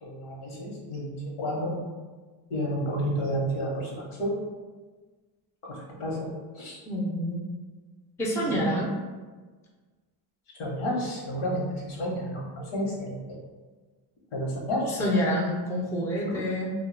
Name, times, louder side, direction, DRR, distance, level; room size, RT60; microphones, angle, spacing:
voice 1, 0.0-1.7 2.5-4.4 5.7-6.3 6.5-6.8 8.4-8.6 10.6-13.4 14.3-15.0 16.3-16.4, equal, 80° left, -3 dB, 1.0 m, -31 dB
voice 2, 6.8-7.4 8.2-8.9 14.9-16.7, equal, 5° left, -3 dB, 0.3 m, -27 dB
2.2 x 2.1 x 3.1 m, 1.4 s
cardioid pair, 95°, 49 cm